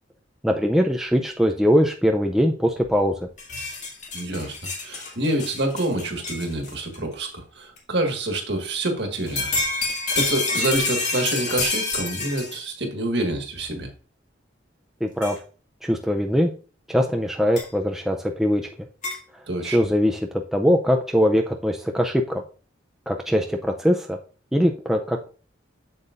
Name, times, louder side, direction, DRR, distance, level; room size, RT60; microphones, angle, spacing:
voice 1, 0.4-3.1 15.0-15.4 15.8-16.5 16.9-18.7 19.6-22.4 23.1-24.2 24.5-25.3, equal, ahead, 2 dB, 0.4 m, -21 dB
sound 1, 3.4-7.0 7.8-7.9 9.1-12.7 13.6-13.7 15.2-15.4 17.6-17.7 19.0-19.2, left 3 dB, 35° left, 2.0 m, -28 dB
voice 2, 4.1-4.6 4.8-9.5 10.2-13.9 19.5-19.8, right 1 dB, 60° right, 4 dB, 1.6 m, -27 dB
7.9 x 7.3 x 2.5 m, 0.38 s
head